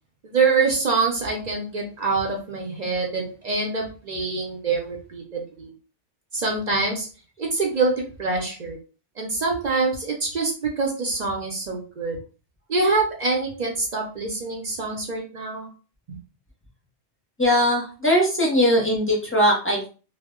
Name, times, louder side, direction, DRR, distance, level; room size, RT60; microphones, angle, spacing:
voice 1, 0.2-5.7 6.3-7.1 7.4-8.8 9.2-12.2 12.7-15.7 16.1-16.2, right 4 dB, 50° right, 0 dB, 0.5 m, -25 dB
voice 2, 17.4-19.9, equal, 15° left, -2 dB, 0.5 m, -20 dB
2.1 x 2.1 x 3.5 m, 0.36 s
omnidirectional pair, 1.2 m